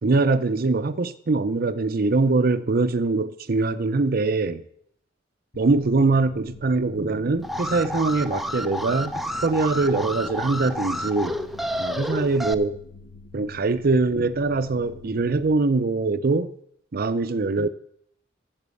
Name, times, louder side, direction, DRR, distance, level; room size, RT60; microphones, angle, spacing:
voice 1, 0.0-4.6 5.6-9.1 9.4-11.4 11.8-12.8 13.3-16.5 16.9-17.7, right 3 dB, 50° right, 0.6 m, -23 dB
sound 1, 5.5-15.5, left 3 dB, 70° left, 1.2 m, -46 dB
Alarm, 7.4-12.5, equal, ahead, 0.5 m, -30 dB
12.0 x 7.3 x 8.2 m
head